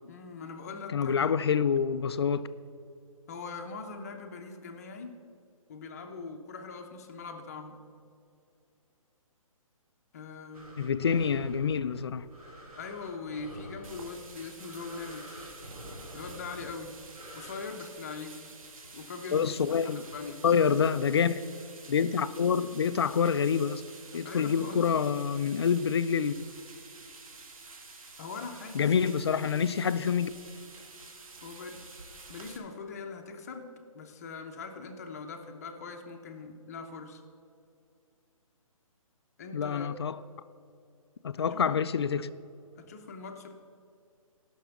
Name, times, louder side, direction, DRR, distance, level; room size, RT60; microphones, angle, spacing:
voice 1, 0.0-1.3 3.3-5.2 5.7-7.9 10.1-10.8 12.7-15.5 16.1-17.0 17.3-18.5 18.9-19.5 19.8-20.4 24.2-24.9 28.2-29.1 31.4-31.8 32.3-37.2 39.4-40.0 41.4-41.9 42.8-43.6, left 4 dB, 25° left, 0.8 m, -42 dB
voice 2, 0.9-2.5 10.8-12.3 19.3-20.0 20.4-21.4 21.9-23.8 24.1-26.3 28.7-30.3 39.5-40.2 41.2-42.3, left 7 dB, 45° left, 0.4 m, -27 dB
sound 1, 10.5-17.6, equal, 90° right, 3.4 m, -48 dB
sound 2, 13.8-32.6, right 3 dB, 70° right, 1.9 m, -50 dB
15.0 x 6.2 x 7.0 m
hypercardioid pair, 170°, 18 cm